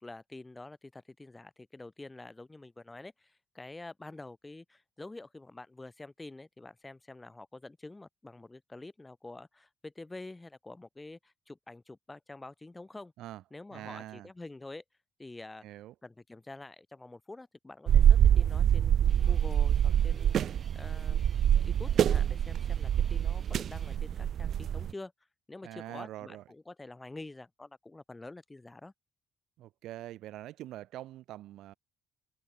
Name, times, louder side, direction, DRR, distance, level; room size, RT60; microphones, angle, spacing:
voice 1, 0.0-13.1 13.5-14.8 15.2-15.6 16.0-21.2 21.5-25.1 25.5-28.9, left 2 dB, 15° left, 2.8 m, -47 dB
voice 2, 13.7-14.3 15.6-15.9 25.6-26.4 29.6-31.7, right 14 dB, 85° right, 2.0 m, -44 dB
sound 1, 17.9-24.9, right 9 dB, 65° right, 0.5 m, -25 dB
Guitar, 19.1-24.0, right 6 dB, 40° right, 4.3 m, -56 dB
cardioid pair, 90°, 0 cm